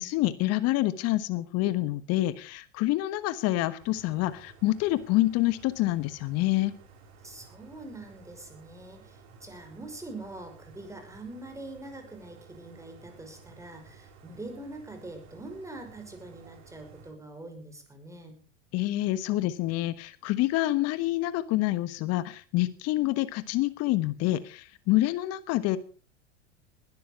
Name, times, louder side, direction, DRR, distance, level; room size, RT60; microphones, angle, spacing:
voice 1, 0.0-6.7 18.7-25.8, left 16 dB, 45° left, 14 dB, 1.3 m, -27 dB
sound 1, 3.8-17.1, right 5 dB, 45° right, 4.7 m, -54 dB
voice 2, 7.2-18.4, right 2 dB, 10° right, 5 dB, 5.7 m, -44 dB
20.0 x 12.5 x 4.7 m, 0.37 s
hypercardioid pair, 95°, 36 cm